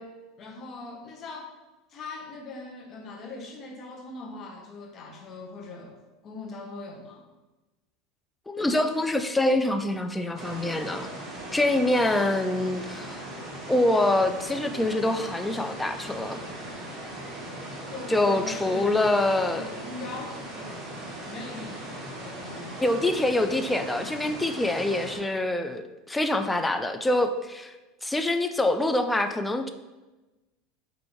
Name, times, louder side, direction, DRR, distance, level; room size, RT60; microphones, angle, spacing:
voice 1, 0.4-1.5 1.9-7.2 17.9-19.1 19.5-20.8 21.2-22.8, left 3 dB, 40° left, 1 dB, 0.8 m, -41 dB
voice 2, 8.5-11.1 11.5-13.2 13.7-16.4 18.1-19.6 22.8-27.7 28.0-29.7, left 1 dB, 10° left, 7 dB, 0.3 m, -25 dB
sound 1, 10.3-25.2, right 1 dB, 20° right, 1.4 m, -39 dB
4.8 x 2.5 x 3.0 m, 1.1 s
hypercardioid pair, 100°, 0 cm